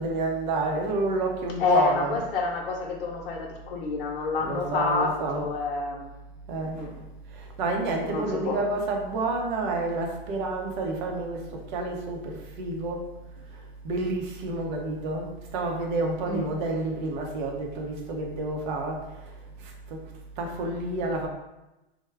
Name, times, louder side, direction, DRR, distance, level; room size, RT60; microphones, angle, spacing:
voice 1, 0.0-2.2 4.4-5.5 6.5-6.8 7.6-13.1 13.8-19.0 19.9-20.0 20.4-21.3, right 2 dB, 50° right, 1 dB, 0.8 m, -29 dB
voice 2, 1.6-6.0 6.6-6.9 8.0-8.6 16.2-16.5, left 4 dB, 65° left, 0 dB, 0.8 m, -28 dB
3.5 x 2.2 x 3.3 m, 0.99 s
hypercardioid pair, 130°, 30 cm